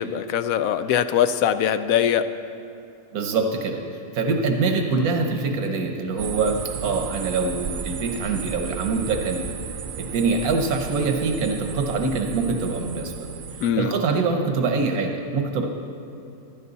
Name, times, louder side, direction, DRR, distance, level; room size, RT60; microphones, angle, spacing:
voice 1, 0.0-2.3 13.6-13.9, left 9 dB, 75° left, 12 dB, 1.0 m, -22 dB
voice 2, 3.1-3.8 4.1-9.4 10.0-13.1 13.8-15.7, right 4 dB, 85° right, 4 dB, 1.5 m, -24 dB
sound 1, 6.2-13.7, right 7 dB, 70° right, 1.0 m, -34 dB
15.5 x 12.0 x 4.1 m, 2.7 s
omnidirectional pair, 1.5 m